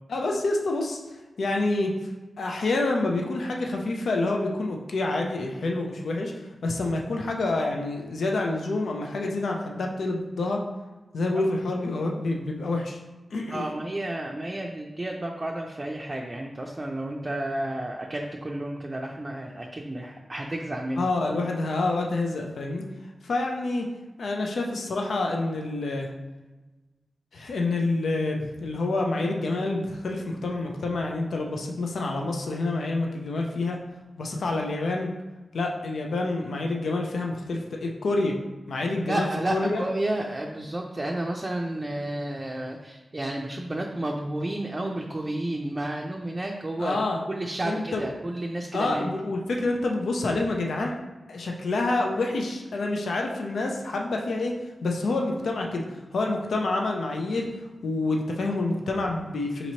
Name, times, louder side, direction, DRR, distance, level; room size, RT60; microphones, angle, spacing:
voice 1, 0.1-1.0 1.4-1.9 2.4-6.3 6.6-10.6 11.1-13.0 13.3-13.7 21.0-22.8 23.2-23.9 24.2-26.1 27.3-33.8 34.2-35.1 35.5-38.4 38.7-39.8 46.8-47.2 47.6-48.1 48.7-50.9 51.3-54.5 54.8-55.8 56.1-57.5 57.8-59.7, left 2 dB, 85° left, 1 dB, 0.4 m, -27 dB
voice 2, 13.5-21.1 39.1-47.0 47.3-49.1, right 1 dB, 30° right, 0 dB, 0.4 m, -31 dB
5.1 x 2.9 x 2.8 m, 1.2 s
cardioid pair, 55°, 0 cm